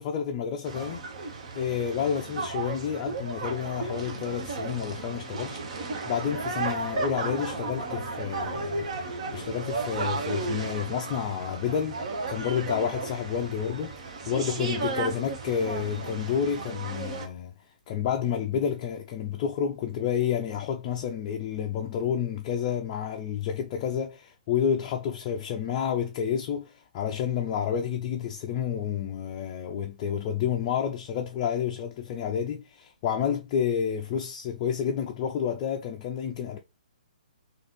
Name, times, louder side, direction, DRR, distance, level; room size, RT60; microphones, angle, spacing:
voice 1, 0.0-17.5 17.9-36.6, left 8 dB, 30° left, 0.4 m, -30 dB
sound 1, 0.6-17.3, right 3 dB, 45° right, 0.8 m, -34 dB
3.8 x 2.4 x 3.1 m
figure-of-eight pair, 125°, 4 cm